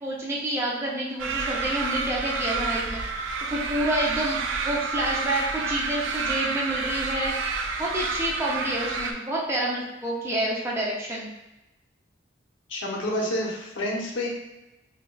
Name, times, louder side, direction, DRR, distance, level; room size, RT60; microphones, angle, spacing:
voice 1, 0.0-3.3 3.5-7.5 7.8-11.3, right 1 dB, 15° right, -5 dB, 0.4 m, -28 dB
sound 1, 1.2-9.1, right 4 dB, 80° right, 0.3 m, -29 dB
voice 2, 12.7-14.3, left 1 dB, 80° left, -3 dB, 0.8 m, -28 dB
4.6 x 2.2 x 2.2 m, 0.99 s
head